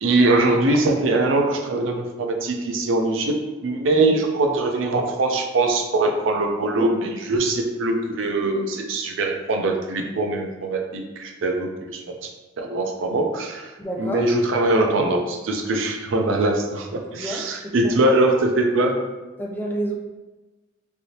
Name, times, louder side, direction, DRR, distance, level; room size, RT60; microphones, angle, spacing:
voice 1, 0.0-3.3 3.6-12.3 12.6-13.7 14.0-19.0, right 2 dB, 75° right, 3 dB, 0.5 m, -22 dB
voice 2, 13.8-14.3 17.2-18.1 19.4-19.9, right 1 dB, 10° left, -2 dB, 0.4 m, -30 dB
3.3 x 2.6 x 2.8 m, 1.2 s
head